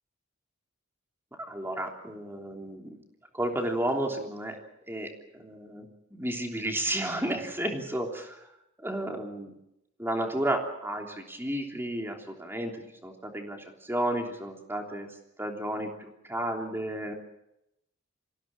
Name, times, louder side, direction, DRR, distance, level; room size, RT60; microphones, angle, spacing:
voice 1, 1.4-3.0 3.3-4.6 4.9-8.5 8.8-9.5 10.0-15.1 15.4-17.1, right 1 dB, 10° right, 2 dB, 3.2 m, -32 dB
26.5 x 16.5 x 8.7 m, 0.85 s
head